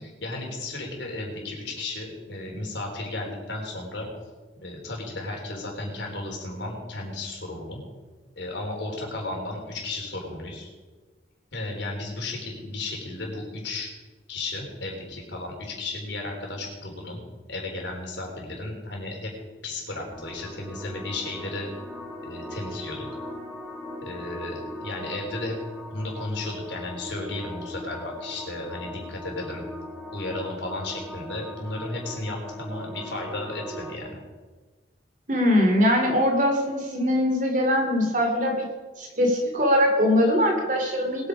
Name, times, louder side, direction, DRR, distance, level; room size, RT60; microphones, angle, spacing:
voice 1, 0.0-4.1 4.6-7.8 8.4-10.7 11.5-13.9 14.3-17.2 17.5-19.3 19.6-21.7 22.2-23.1 24.0-25.6 25.9-29.7 30.1-34.2, left 2 dB, 70° left, 0 dB, 4.0 m, -34 dB
sound 1, 20.1-34.0, left 1 dB, 5° left, 2.4 m, -39 dB
voice 2, 35.3-38.7 39.0-41.3, equal, 40° right, 2 dB, 2.8 m, -22 dB
21.5 x 8.6 x 5.0 m, 1.3 s
head